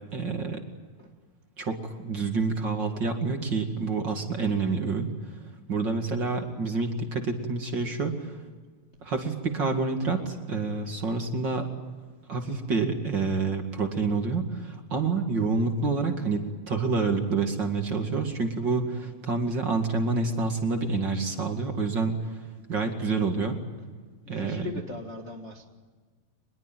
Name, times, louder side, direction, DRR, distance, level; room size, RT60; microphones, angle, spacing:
voice 1, 0.1-0.6 1.6-5.1 5.7-8.4 9.0-11.7 12.3-16.4 16.7-22.1 22.7-23.6 24.3-24.7, right 4 dB, 35° right, 4 dB, 2.2 m, -28 dB
voice 2, 24.2-25.7, left 3 dB, 80° left, 1 dB, 0.6 m, -39 dB
24.5 x 22.0 x 9.1 m, 1.4 s
omnidirectional pair, 4.4 m